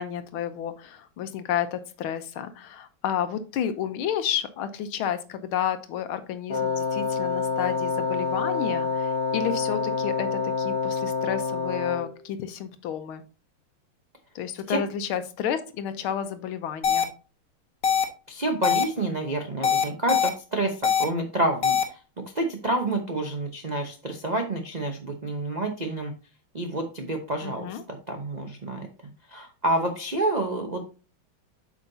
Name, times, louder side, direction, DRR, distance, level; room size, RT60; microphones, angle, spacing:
voice 1, 0.0-13.2 14.3-17.1 27.4-27.8, left 9 dB, 85° left, 10 dB, 1.6 m, -31 dB
Wind instrument woodwind instrument, 6.5-12.2, left 5 dB, 20° left, 0.7 m, -27 dB
sound 1, 16.8-17.0 17.8-18.0 18.6-18.8 19.6-20.3 20.8-21.0 21.6-21.8, left 7 dB, 50° left, 1.3 m, -21 dB
voice 2, 18.3-22.0 22.3-26.1 26.5-28.9 29.3-30.9, right 2 dB, 65° right, 2 dB, 0.4 m, -28 dB
8.3 x 5.9 x 2.7 m, 0.35 s
omnidirectional pair, 2.3 m